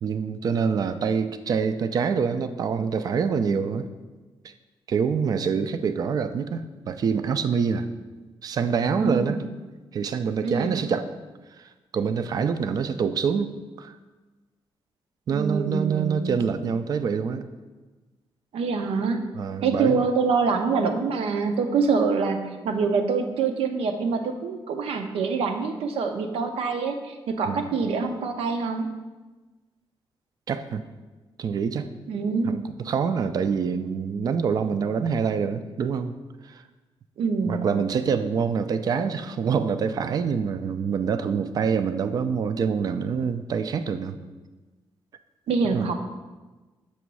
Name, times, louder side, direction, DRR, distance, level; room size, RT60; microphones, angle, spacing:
voice 1, 0.0-3.9 4.4-4.5 4.9-7.9 8.4-9.4 9.9-11.1 11.9-14.0 15.3-17.5 19.3-20.0 27.5-27.8 30.5-30.8 31.4-31.9 32.5-36.2 36.5-36.6 37.4-44.2 45.7-45.9, right 6 dB, 40° right, 10 dB, 0.3 m, -26 dB
voice 2, 9.0-9.4 10.4-10.8 15.3-16.4 18.5-19.3 19.6-28.9 32.1-32.6 37.2-37.7 45.5-45.9, right 5 dB, 85° right, 6 dB, 0.7 m, -25 dB
7.1 x 3.0 x 6.1 m, 1.2 s
wide cardioid pair, 175°, 10 cm